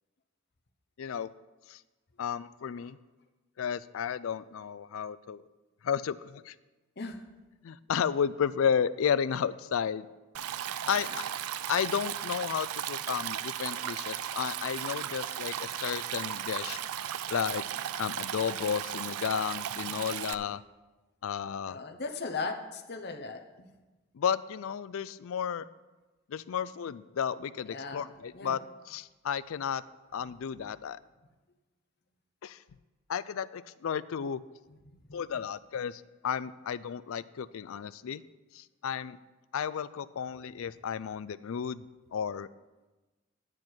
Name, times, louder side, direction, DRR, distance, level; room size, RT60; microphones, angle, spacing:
voice 1, 1.0-1.3 1.7-1.8 2.2-3.0 3.6-5.4 5.8-6.5 7.6-10.1 10.9-11.2 11.7-16.8 17.3-17.6 18.0-20.6 21.2-21.8 24.1-25.6 26.3-29.8 30.1-31.0 32.4-32.6 33.1-34.4 35.1-38.2 38.5-39.2 39.5-41.8 42.1-42.5, left 7 dB, 65° left, 16 dB, 0.3 m, -33 dB
Stream, 10.3-20.3, right 10 dB, 80° right, 0.4 m, -36 dB
voice 2, 21.7-23.7 27.7-28.6 35.1-35.2, left 4 dB, 45° left, 5 dB, 0.9 m, -38 dB
10.5 x 9.8 x 4.5 m, 1.2 s
head